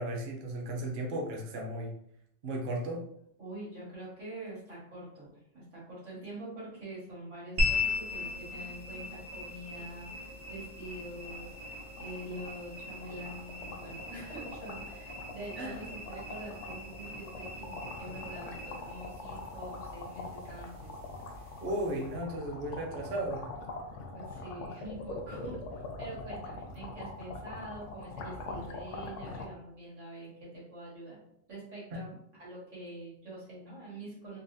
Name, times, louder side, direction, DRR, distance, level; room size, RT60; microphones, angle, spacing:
voice 1, 0.0-1.9 2.4-3.0 15.6-15.8 21.6-23.4 31.9-32.0, right 1 dB, 55° right, 0 dB, 0.6 m, -35 dB
voice 2, 3.4-20.9 21.3-21.6 24.1-31.2 31.5-34.4, right 1 dB, 90° right, -7 dB, 1.9 m, -45 dB
sound 1, 7.6-22.2, left 3 dB, 70° right, 1.2 m, -39 dB
sound 2, 10.4-10.5 10.9-11.0 11.2-29.5, left 2 dB, 85° left, 0.9 m, -43 dB
3.8 x 2.1 x 2.6 m, 0.72 s
omnidirectional pair, 1.2 m